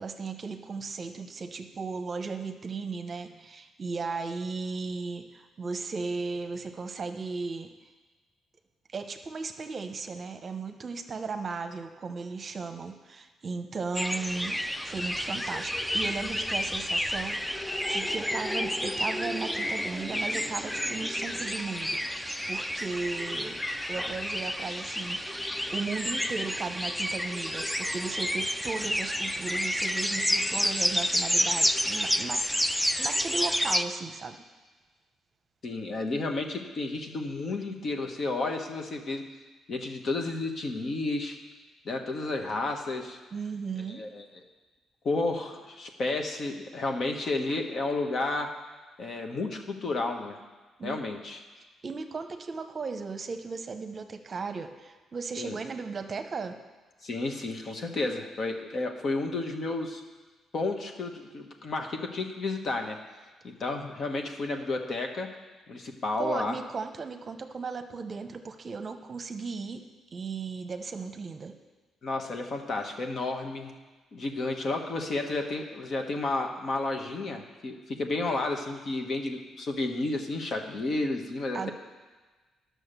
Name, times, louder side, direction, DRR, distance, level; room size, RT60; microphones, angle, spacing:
voice 1, 0.0-7.7 8.9-23.6 23.9-25.4 25.7-32.5 33.0-34.4 43.3-44.0 50.8-51.0 51.6-56.6 66.2-71.5 81.5-81.7, right 4 dB, 40° right, 7 dB, 0.8 m, -36 dB
sound 1, 13.9-33.8, equal, 5° left, 0.4 m, -30 dB
voice 2, 35.6-39.2 39.7-41.4 41.8-43.2 43.9-44.2 45.0-48.5 49.0-50.4 50.8-51.4 55.4-55.6 57.0-60.0 60.5-63.0 63.4-65.3 65.7-66.6 72.0-73.7 74.1-81.7, left 2 dB, 50° left, 3 dB, 1.3 m, -31 dB
11.0 x 6.4 x 6.7 m, 1.3 s
cardioid pair, 105°, 0 cm